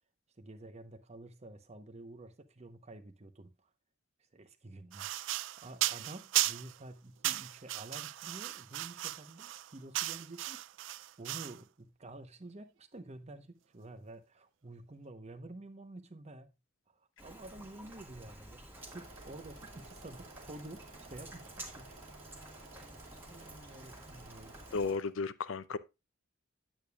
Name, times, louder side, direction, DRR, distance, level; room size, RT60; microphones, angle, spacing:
voice 1, 0.4-3.7 4.3-16.5 16.9-21.9 22.7-24.6, right 2 dB, 35° right, 0.8 m, -50 dB
sound 1, 4.9-6.8 7.2-11.6, right 16 dB, 65° right, 0.3 m, -36 dB
Rain, 17.2-24.9, right 1 dB, 10° right, 1.7 m, -51 dB
sound 2, 18.7-25.1, right 3 dB, 80° right, 2.2 m, -56 dB
voice 2, 24.7-25.8, left 4 dB, 75° left, 0.5 m, -34 dB
8.9 x 8.5 x 2.3 m
head